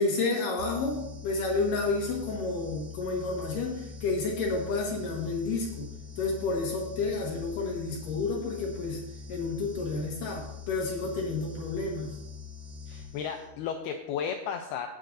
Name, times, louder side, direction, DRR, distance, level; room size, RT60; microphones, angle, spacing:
voice 1, 0.0-5.9 6.2-9.0 9.3-12.2, left 3 dB, 60° left, -1 dB, 2.5 m, -30 dB
sound 1, 0.6-13.7, left 5 dB, 80° right, 3.3 m, -44 dB
voice 2, 12.9-14.9, left 7 dB, 85° left, 4 dB, 2.2 m, -34 dB
18.0 x 7.7 x 2.7 m, 0.87 s
omnidirectional pair, 5.2 m